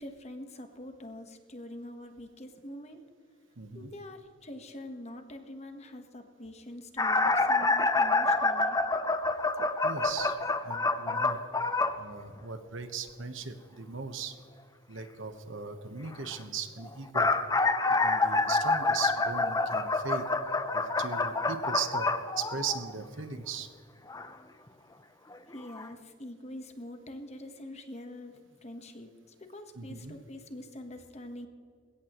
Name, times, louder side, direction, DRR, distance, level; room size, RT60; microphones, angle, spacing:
voice 1, 0.0-3.0 3.7-8.8 25.5-31.5, left 1 dB, 35° left, 6 dB, 1.2 m, -45 dB
voice 2, 3.6-3.9 9.8-10.4 10.6-11.4 12.0-14.3 14.9-17.3 17.9-20.3 20.7-23.7 29.7-30.1, right 5 dB, 70° right, 8 dB, 1.1 m, -38 dB
sound 1, 7.0-12.0 16.9-23.0 24.1-24.3 25.3-25.4 25.8-25.9, left 3 dB, 20° left, 0.6 m, -27 dB
21.0 x 17.0 x 3.1 m, 2.2 s
head